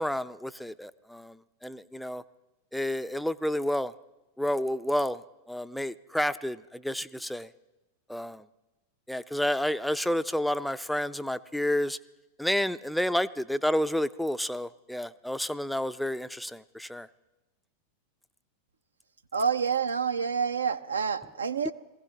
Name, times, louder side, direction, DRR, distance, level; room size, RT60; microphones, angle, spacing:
voice 1, 0.0-1.3 1.6-2.2 2.7-3.9 4.4-5.2 5.5-7.5 8.1-8.4 9.1-12.0 12.4-17.1, left 1 dB, ahead, 14 dB, 0.4 m, -30 dB
voice 2, 19.3-21.7, right 6 dB, 75° right, 11 dB, 0.5 m, -28 dB
21.0 x 15.5 x 3.2 m, 1.1 s
figure-of-eight pair, 90°, 0 cm